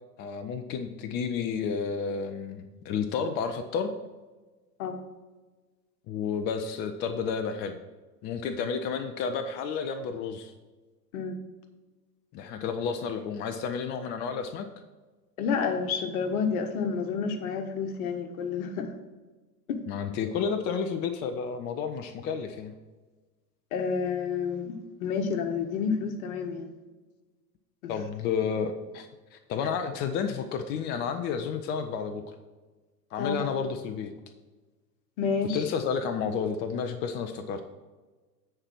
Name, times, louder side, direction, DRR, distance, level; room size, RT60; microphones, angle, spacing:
voice 1, 0.2-3.9 6.1-7.8 8.2-10.5 12.3-14.7 19.9-22.7 27.9-32.2 33.1-34.1 35.5-37.6, left 6 dB, 20° left, 7 dB, 0.4 m, -31 dB
voice 2, 15.4-18.9 19.7-19.8 23.7-24.7 25.0-26.7 27.8-27.9 33.2-33.5 35.2-35.6, left 5 dB, 55° left, 6 dB, 1.4 m, -29 dB
9.7 x 4.5 x 5.8 m, 1.3 s
figure-of-eight pair, 90°, 50 cm